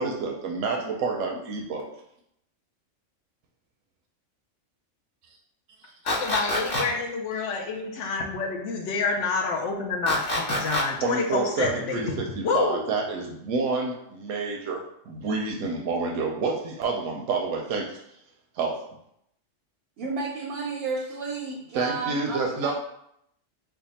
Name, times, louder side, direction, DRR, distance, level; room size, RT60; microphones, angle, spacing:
voice 1, 0.0-1.9 11.0-18.0 18.5-18.8 21.7-22.7, right 4 dB, 85° right, -1 dB, 1.0 m, -28 dB
voice 2, 6.0-12.2 12.4-12.9, left 4 dB, 70° left, 1 dB, 1.0 m, -28 dB
sound 1, 6.1-6.8 10.1-10.8, left 1 dB, 45° left, 1.4 m, -27 dB
voice 3, 20.0-22.7, right 4 dB, 65° right, -1 dB, 0.7 m, -32 dB
3.5 x 2.2 x 4.0 m, 0.75 s
omnidirectional pair, 1.3 m